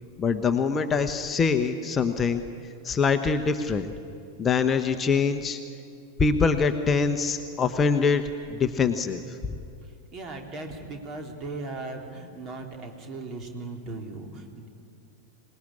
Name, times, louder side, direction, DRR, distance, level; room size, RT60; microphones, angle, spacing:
voice 1, 0.2-2.4 2.8-3.9 4.4-5.6 6.2-8.2 8.5-9.2, left 5 dB, 20° left, 7 dB, 1.1 m, -24 dB
voice 2, 9.8-14.7, right 2 dB, 30° right, 3 dB, 3.5 m, -38 dB
26.0 x 19.0 x 9.9 m, 2.5 s
figure-of-eight pair, 90°, 0 cm